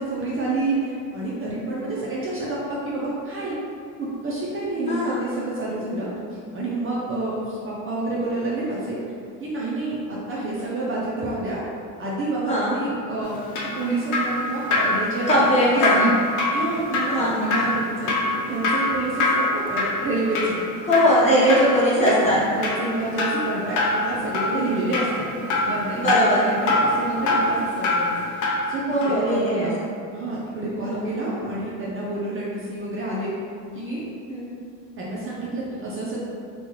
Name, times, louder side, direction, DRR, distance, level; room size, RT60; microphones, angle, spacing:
voice 1, 0.0-3.6 4.0-9.0 9.4-11.6 12.0-13.4 13.8-15.3 15.7-16.1 16.5-18.1 18.5-20.6 21.2-21.6 21.9-25.2 25.6-27.7 28.0-28.1 28.7-29.8 30.1-33.3 33.7-34.0 35.0-36.2, right 2 dB, 35° right, -6 dB, 0.6 m, -28 dB
voice 2, 4.9-5.2 12.4-12.7 15.3-16.1 17.1-17.5 20.9-22.4 25.9-26.5 28.9-29.7 30.8-31.1 34.3-34.5, equal, 20° left, -8 dB, 1.0 m, -20 dB
Drip, 13.2-28.7 29.0-29.1, left 2 dB, 50° left, 0.7 m, -24 dB
2.9 x 2.3 x 3.0 m, 2.4 s
supercardioid pair, 85°, 38 cm